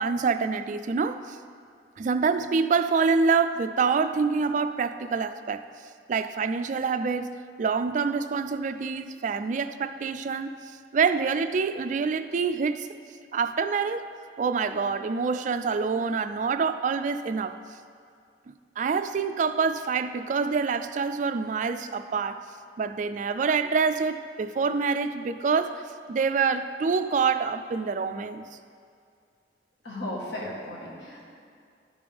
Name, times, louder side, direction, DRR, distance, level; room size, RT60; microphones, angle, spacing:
voice 1, 0.0-1.4 2.0-5.6 6.1-10.5 10.9-12.9 13.3-14.1 14.4-17.6 18.5-22.4 22.8-25.8 26.1-28.4, right 5 dB, 45° right, 10 dB, 0.3 m, -26 dB
voice 2, 29.8-31.3, left 1 dB, 90° left, -4 dB, 1.5 m, -36 dB
11.5 x 5.1 x 3.4 m, 2.3 s
head